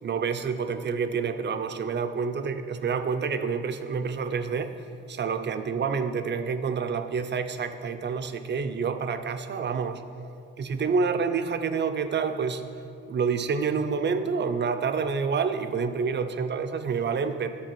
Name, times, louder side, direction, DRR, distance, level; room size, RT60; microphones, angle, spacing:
voice 1, 0.0-4.7 5.1-10.0 10.6-12.7 13.1-17.5, right 5 dB, 35° right, 9 dB, 0.6 m, -28 dB
10.5 x 4.3 x 6.0 m, 2.5 s
cardioid pair, 90°, 30 cm